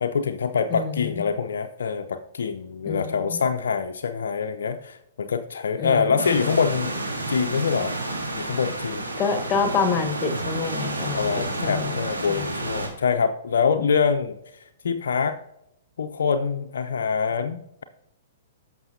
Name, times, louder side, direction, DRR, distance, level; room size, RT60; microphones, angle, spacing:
voice 1, 0.0-7.0 7.3-7.9 8.3-9.1 9.4-9.5 11.1-14.4 14.8-15.4 16.0-17.8, left 6 dB, 65° left, 7 dB, 0.5 m, -25 dB
voice 2, 0.7-1.2 2.8-3.4 5.8-6.3 9.2-12.0 12.3-12.5 13.8-14.0, left 5 dB, 25° left, 8 dB, 1.2 m, -27 dB
sound 1, 6.2-12.9, right 2 dB, 75° right, 2.1 m, -30 dB
14.5 x 6.0 x 2.7 m, 0.80 s
figure-of-eight pair, 110°, 0 cm